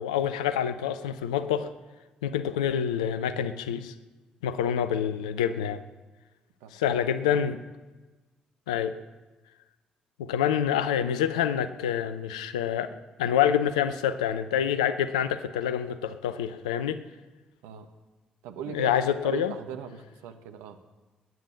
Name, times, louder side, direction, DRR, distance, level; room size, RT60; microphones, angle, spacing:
voice 1, 0.0-1.7 2.2-3.9 4.4-5.8 6.7-7.6 8.7-9.0 10.2-17.0 18.7-19.5, left 9 dB, 80° left, 12 dB, 0.7 m, -27 dB
voice 2, 6.6-7.0 7.3-7.4 17.6-17.9 18.4-18.9 19.2-20.8, right 8 dB, 70° right, 7 dB, 1.2 m, -39 dB
20.5 x 9.4 x 7.0 m, 1.2 s
figure-of-eight pair, 40°, 4 cm